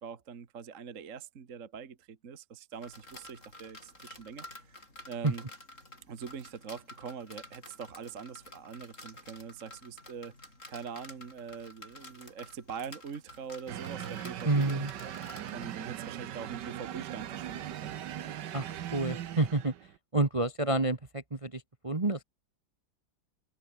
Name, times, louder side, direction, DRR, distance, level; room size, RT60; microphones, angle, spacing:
voice 1, 0.0-5.4 6.1-10.4 10.7-15.1 15.5-18.0, right 6 dB, 40° right, 1.7 m, -43 dB
sound 1, 2.7-15.7, left 1 dB, 35° left, 7.6 m, -51 dB
sound 2, 13.7-20.0, right 11 dB, 60° right, 1.5 m, -40 dB
voice 2, 14.4-14.9 18.5-19.7 20.1-22.2, right 2 dB, 20° right, 1.2 m, -29 dB
open air
omnidirectional pair, 2.2 m